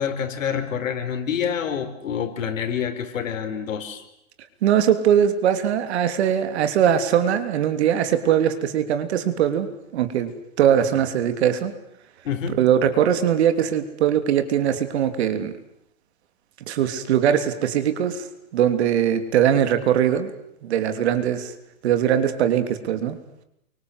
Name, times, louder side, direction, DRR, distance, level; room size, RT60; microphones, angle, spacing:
voice 1, 0.0-4.0 12.2-12.6, left 8 dB, 65° left, 7 dB, 4.9 m, -27 dB
voice 2, 4.6-10.3 10.6-11.7 12.6-15.5 16.7-18.3 18.5-20.3 20.6-21.5 21.8-23.2, right 9 dB, 50° right, 9 dB, 3.3 m, -21 dB
29.0 x 25.0 x 8.1 m, 0.79 s
hypercardioid pair, 155°, 41 cm